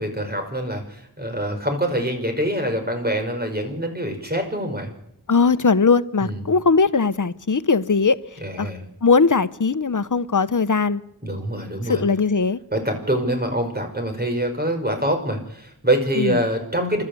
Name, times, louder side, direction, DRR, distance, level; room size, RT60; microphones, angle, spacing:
voice 1, 0.0-4.9 6.2-6.5 8.4-8.8 11.2-12.0 12.7-17.0, right 1 dB, 25° right, 5.3 m, -25 dB
voice 2, 5.3-8.2 8.6-8.7 9.0-11.0 11.9-12.6 16.2-16.3, left 4 dB, 55° left, 0.9 m, -19 dB
29.0 x 12.5 x 8.4 m
wide cardioid pair, 45°, 38 cm